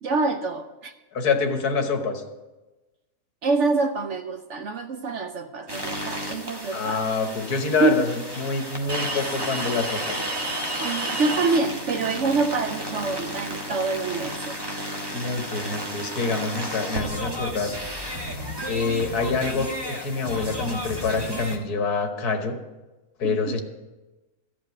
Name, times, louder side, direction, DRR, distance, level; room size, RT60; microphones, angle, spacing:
voice 1, 0.0-0.9 3.4-7.1 7.8-8.1 10.8-14.6 23.2-23.6, right 3 dB, 65° right, 0.8 m, -26 dB
voice 2, 1.1-2.2 6.7-8.1 8.4-10.2 15.1-17.7 18.7-22.6 23.2-23.6, left 4 dB, 75° left, 1.7 m, -26 dB
sound 1, 5.7-21.6, equal, 15° right, 1.2 m, -32 dB
14.0 x 5.2 x 9.3 m
omnidirectional pair, 1.6 m